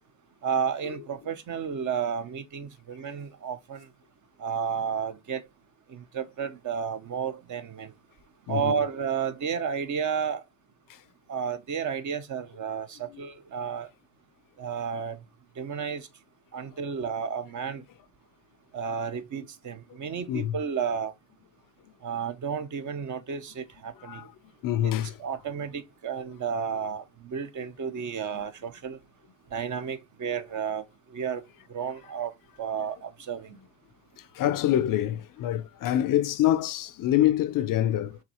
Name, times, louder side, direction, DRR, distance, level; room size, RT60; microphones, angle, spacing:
voice 1, 0.4-3.9 4.4-5.4 5.9-7.9 8.5-10.4 11.3-13.9 14.6-15.2 15.6-16.1 16.5-17.8 18.7-21.1 22.0-24.2 24.8-24.9 25.2-29.0 29.5-30.8 31.1-31.4 31.7-32.3 32.6-33.6, right 7 dB, 45° right, 0.8 m, -32 dB
voice 2, 8.5-8.8 13.1-13.2 20.3-20.6 24.0-24.3 24.6-25.2 34.2-38.2, left 12 dB, 50° left, 0.5 m, -26 dB
4.8 x 3.4 x 2.9 m
supercardioid pair, 70°, 43 cm